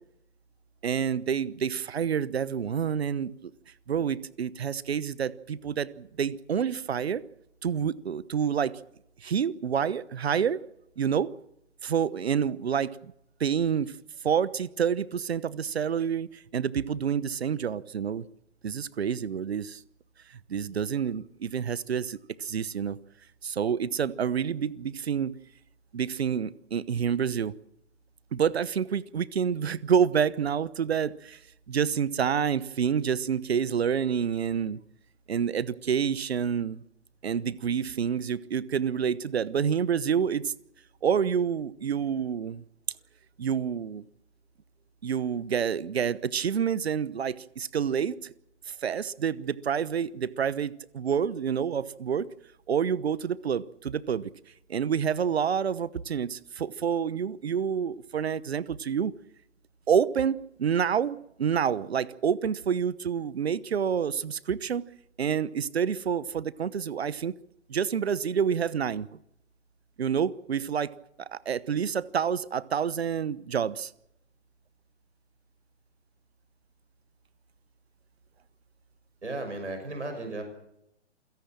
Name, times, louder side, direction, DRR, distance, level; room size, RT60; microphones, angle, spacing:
voice 1, 0.8-3.5 3.9-7.2 7.6-8.7 9.2-10.6 11.0-11.3 11.8-13.1 13.4-13.9 14.2-18.2 18.6-19.8 20.5-23.0 23.4-25.3 25.9-27.5 28.3-31.4 31.7-34.8 35.3-36.8 37.2-40.5 41.0-42.6 43.4-44.1 45.0-48.3 48.7-52.3 52.7-54.3 54.7-59.1 59.9-64.8 65.2-67.3 67.7-69.1 70.0-70.9 71.3-73.9, right 7 dB, 60° right, 20 dB, 1.1 m, -28 dB
voice 2, 79.2-80.4, right 2 dB, 75° right, 5 dB, 6.4 m, -35 dB
28.0 x 16.5 x 7.4 m, 0.82 s
figure-of-eight pair, 125°, 35 cm